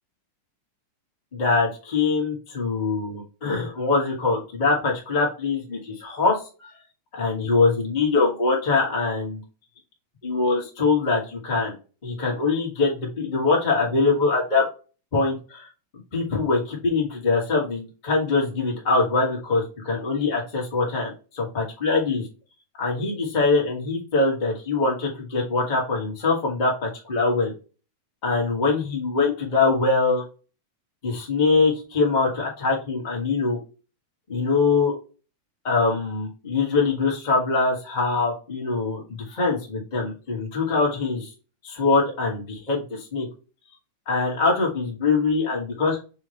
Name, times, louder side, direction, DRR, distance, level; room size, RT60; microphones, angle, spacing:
voice 1, 1.3-6.7 7.1-9.4 10.2-11.7 12.0-14.6 15.1-15.7 16.1-22.3 22.8-27.5 28.2-30.2 31.0-33.6 34.3-34.9 35.6-41.3 41.6-43.3 44.0-46.0, left 3 dB, 30° left, -3 dB, 0.9 m, -23 dB
5.5 x 3.2 x 2.9 m, 0.33 s
omnidirectional pair, 3.6 m